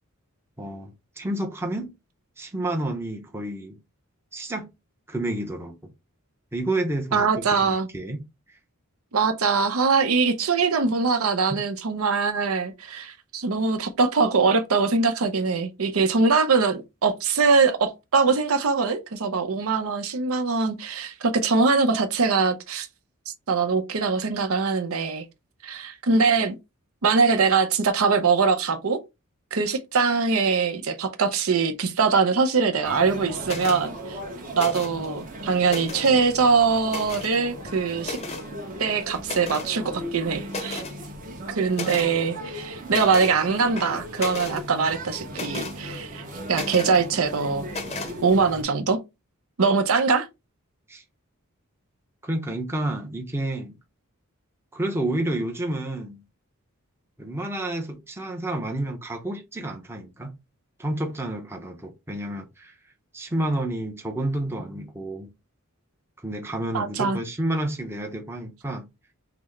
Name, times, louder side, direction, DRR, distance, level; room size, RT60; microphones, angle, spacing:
voice 1, 0.6-1.9 2.4-3.8 4.3-4.7 5.1-5.7 6.5-8.2 50.9-51.0 52.2-53.8 54.7-56.2 57.2-60.3 60.8-62.7 63.1-65.3 66.2-68.9, right 1 dB, 10° right, 0.6 m, -30 dB
voice 2, 7.1-7.9 9.1-22.9 23.5-25.2 25.6-26.6 27.0-29.0 29.5-34.2 34.5-38.2 38.8-40.8 41.5-47.7 48.2-49.0 49.6-50.3 66.7-67.2, right 4 dB, 75° right, 0.7 m, -22 dB
sound 1, 32.8-48.6, equal, 40° right, 1.0 m, -37 dB
sound 2, 33.4-33.8 34.5-35.1 35.5-36.2 36.9-37.4 38.0-38.5 39.2-39.7 40.1-40.2 40.5-41.0 41.7-42.1 42.9-43.4 43.8-44.6 45.3-45.8 46.5-47.0 47.7-48.1, left 3 dB, 30° left, 0.6 m, -34 dB
5.9 x 2.1 x 3.2 m
head